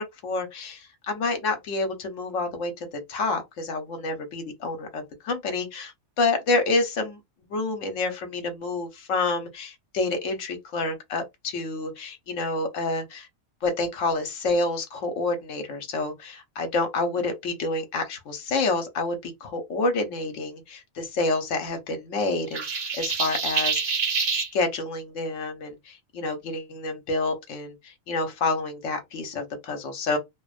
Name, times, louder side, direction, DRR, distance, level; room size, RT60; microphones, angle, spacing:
voice 1, 0.0-7.2 7.5-13.3 13.6-24.0 24.3-30.2, left 3 dB, 75° left, 1.1 m, -28 dB
sound 1, 22.5-24.5, right 5 dB, 65° right, 1.1 m, -26 dB
2.5 x 2.1 x 2.3 m
omnidirectional pair, 1.3 m